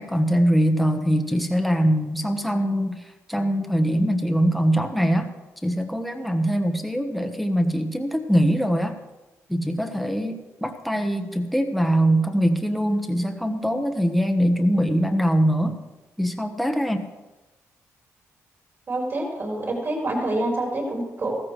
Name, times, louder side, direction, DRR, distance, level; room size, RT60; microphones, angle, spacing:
voice 1, 0.0-3.0 3.3-5.3 5.6-9.0 9.5-15.7 16.2-17.1, equal, ahead, 5 dB, 1.2 m, -22 dB
voice 2, 18.9-21.4, right 1 dB, 45° right, 0 dB, 4.7 m, -26 dB
15.0 x 14.0 x 3.3 m, 1.1 s
cardioid pair, 85°, 5 cm